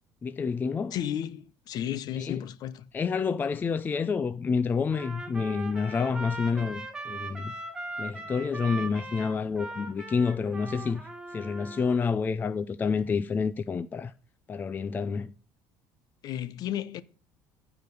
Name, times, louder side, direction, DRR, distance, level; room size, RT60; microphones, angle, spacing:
voice 1, 0.2-1.0 2.2-2.5 2.9-7.6 8.0-14.1 14.5-15.3, left 5 dB, 20° left, 0.5 m, -29 dB
voice 2, 0.9-2.8 16.2-17.0, left 11 dB, 50° left, 0.9 m, -33 dB
Trumpet, 4.9-12.0, right 2 dB, 5° right, 2.1 m, -40 dB
15.0 x 5.0 x 9.4 m
cardioid pair, 155°, 9 cm